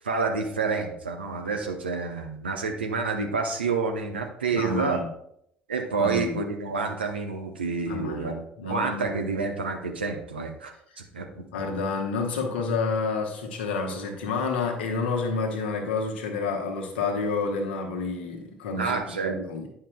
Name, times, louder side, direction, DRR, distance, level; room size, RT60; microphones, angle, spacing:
voice 1, 0.0-5.0 5.7-10.7 11.1-11.4 18.8-19.4, right 4 dB, 80° right, 4 dB, 0.7 m, -28 dB
voice 2, 4.5-5.1 6.0-6.4 7.9-9.2 11.5-19.7, left 4 dB, 75° left, 1 dB, 1.1 m, -29 dB
9.7 x 5.7 x 2.2 m, 0.73 s
figure-of-eight pair, 55°, 6 cm